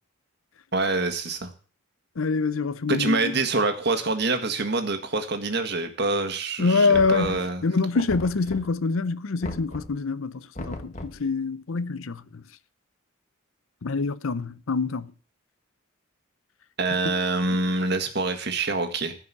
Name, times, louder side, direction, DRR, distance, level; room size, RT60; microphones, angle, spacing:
voice 1, 0.7-1.5 2.9-7.6 16.8-19.1, right 3 dB, 50° right, 1.7 m, -26 dB
voice 2, 2.2-3.3 6.6-12.4 13.8-15.1, left 4 dB, 75° left, 0.6 m, -25 dB
Knock, 6.9-7.7 8.1-8.9 9.4-10.0 10.5-11.3, left 1 dB, 35° left, 1.3 m, -38 dB
15.5 x 5.4 x 8.4 m
head